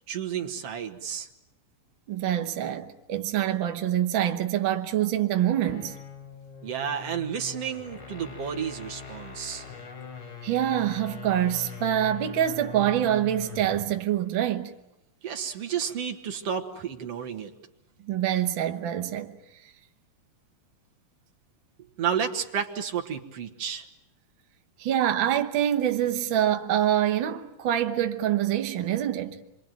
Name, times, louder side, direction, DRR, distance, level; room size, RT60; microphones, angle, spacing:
voice 1, 0.1-1.3 6.6-9.6 15.2-17.5 22.0-23.8, right 8 dB, 50° right, 2.5 m, -31 dB
voice 2, 2.1-6.0 10.4-14.7 18.0-19.3 24.8-29.4, right 11 dB, 80° right, 1.1 m, -25 dB
sound 1, 5.5-14.0, left 7 dB, 60° left, 4.5 m, -42 dB
27.5 x 23.0 x 9.3 m
omnidirectional pair, 4.0 m